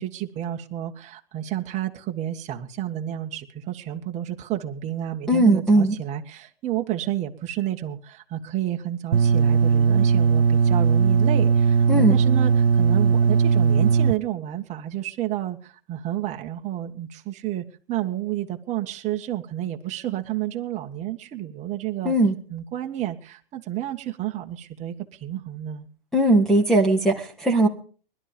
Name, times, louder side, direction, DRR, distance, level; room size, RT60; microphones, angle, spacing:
voice 1, 0.0-22.1 22.5-25.9, right 12 dB, 25° right, 4 dB, 1.9 m, -30 dB
voice 2, 5.3-6.0 11.9-12.2 22.0-22.3 26.1-27.7, right 1 dB, ahead, 2 dB, 2.7 m, -18 dB
sound 1, 9.1-14.1, right 6 dB, 80° right, 0.9 m, -18 dB
21.0 x 12.5 x 5.3 m, 0.41 s
hypercardioid pair, 130°, 29 cm